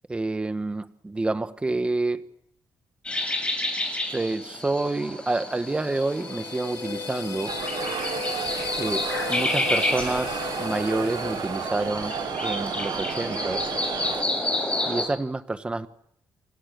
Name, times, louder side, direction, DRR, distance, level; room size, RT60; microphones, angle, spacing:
voice 1, 0.1-2.3 4.1-7.5 8.8-12.1 12.4-13.7 14.9-15.9, right 2 dB, 15° right, 1.5 m, -28 dB
sound 1, 3.1-15.1, left 2 dB, 15° left, 6.9 m, -30 dB
sound 2, 5.4-12.5, left 7 dB, 50° left, 1.7 m, -36 dB
sound 3, 7.5-14.2, right 10 dB, 75° right, 1.0 m, -33 dB
29.5 x 28.0 x 6.9 m
cardioid pair, 155°, 7 cm